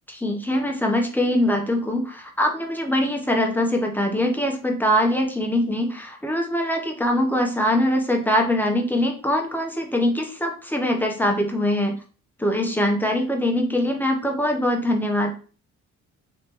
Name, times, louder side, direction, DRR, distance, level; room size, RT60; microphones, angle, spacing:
voice 1, 0.1-11.9 12.4-15.3, left 1 dB, 5° left, 2 dB, 0.8 m, -23 dB
3.2 x 3.1 x 3.0 m, 0.39 s
cardioid pair, 90°, 30 cm